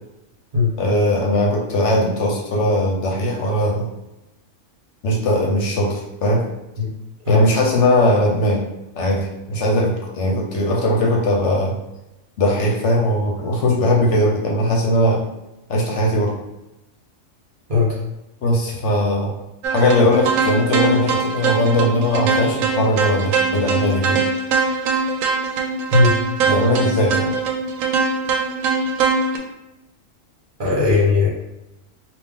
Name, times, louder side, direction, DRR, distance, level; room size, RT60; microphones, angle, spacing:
voice 1, 0.8-3.9 5.0-6.4 7.3-8.6 8.9-11.7 12.4-15.2 15.7-16.3 18.4-19.3 19.7-24.2 26.5-27.3, left 1 dB, 65° left, -2 dB, 1.0 m, -19 dB
sound 1, 19.6-29.4, right 4 dB, 85° right, 1.0 m, -21 dB
voice 2, 30.6-31.3, left 4 dB, 40° right, -6 dB, 1.2 m, -17 dB
3.4 x 2.5 x 3.6 m, 0.94 s
omnidirectional pair, 1.3 m